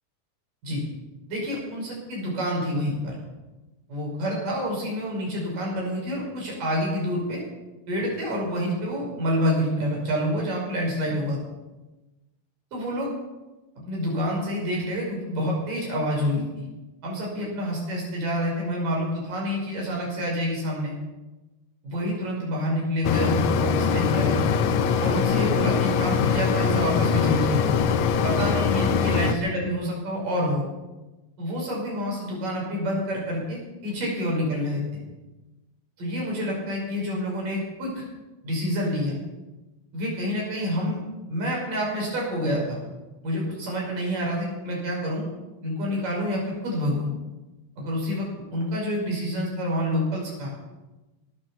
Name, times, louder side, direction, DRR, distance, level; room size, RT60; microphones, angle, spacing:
voice 1, 1.3-3.2 3.9-7.4 7.9-11.4 12.7-13.1 13.9-16.7 17.0-20.9 21.8-24.4 25.0-27.8 28.2-30.7 31.4-35.0 36.0-38.0 38.4-39.2 39.9-41.0 41.3-42.8 43.2-45.3 45.6-47.1 47.8-50.5, equal, 65° right, -2 dB, 7.3 m, -28 dB
Mechanisms, 23.0-29.3, left 6 dB, 70° left, 1.8 m, -22 dB
20.5 x 9.1 x 7.3 m, 1.1 s
omnidirectional pair, 4.1 m